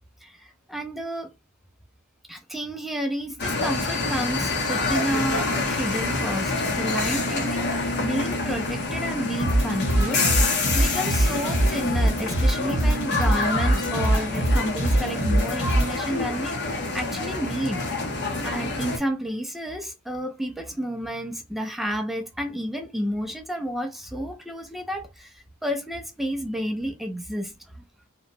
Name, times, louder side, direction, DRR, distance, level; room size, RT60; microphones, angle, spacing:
voice 1, 0.2-1.3 2.3-17.8 18.4-27.8, equal, ahead, 0.3 m, -31 dB
sound 1, 3.4-19.0, left 3 dB, 50° left, 0.7 m, -27 dB
sound 2, 9.4-15.9, right 1 dB, 75° left, 1.3 m, -23 dB
2.9 x 2.1 x 2.6 m
head